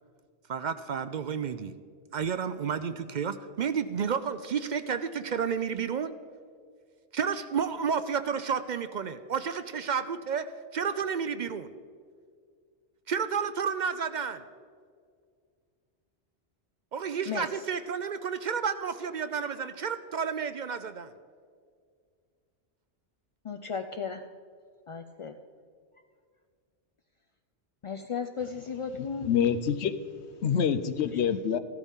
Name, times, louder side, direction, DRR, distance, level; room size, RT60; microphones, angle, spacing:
voice 1, 0.5-1.8 2.1-6.1 7.1-10.5 10.7-11.7 13.1-14.4 16.9-21.1, right 6 dB, 55° right, 0.5 m, -31 dB
voice 2, 23.4-24.2 24.9-25.3 27.8-29.3, left 6 dB, 55° left, 0.3 m, -35 dB
voice 3, 29.0-29.9 30.3-31.6, left 8 dB, 75° left, 0.9 m, -26 dB
15.0 x 13.0 x 3.6 m
omnidirectional pair, 1.1 m